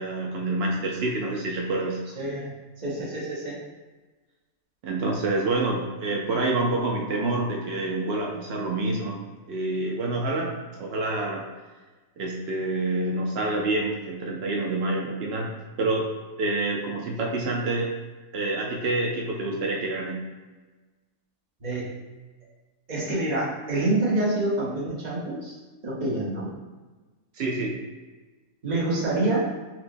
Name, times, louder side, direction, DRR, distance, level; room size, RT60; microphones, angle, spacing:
voice 1, 0.0-2.0 4.8-9.2 9.5-11.5 12.2-16.1 16.4-17.9 18.3-20.2 27.3-27.8, right 2 dB, 80° right, -1 dB, 0.5 m, -27 dB
voice 2, 2.1-3.6 21.6-21.9 22.9-25.6 25.8-26.5 28.6-29.4, right 2 dB, 35° right, -6 dB, 0.9 m, -27 dB
5.7 x 2.1 x 2.6 m, 1.3 s
omnidirectional pair, 1.6 m